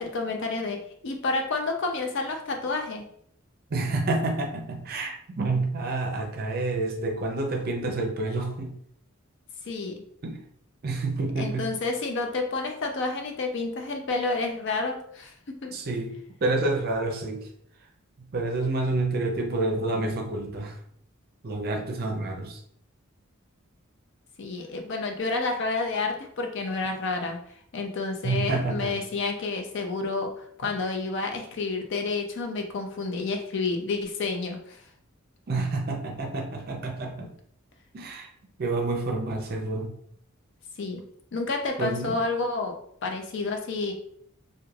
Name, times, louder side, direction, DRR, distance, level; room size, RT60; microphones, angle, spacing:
voice 1, 0.0-3.1 9.6-10.0 11.4-15.3 15.6-15.8 24.4-27.4 27.7-34.8 40.8-41.0 41.3-43.9, left 3 dB, 55° left, 3 dB, 0.4 m, -30 dB
voice 2, 3.7-8.7 10.2-10.4 10.8-11.7 15.7-17.5 18.2-20.7 21.4-22.6 28.2-28.9 35.5-37.3 37.9-38.3 38.6-39.9 41.8-42.2, right 2 dB, 45° right, 2 dB, 0.5 m, -28 dB
3.1 x 2.2 x 2.3 m, 0.65 s
head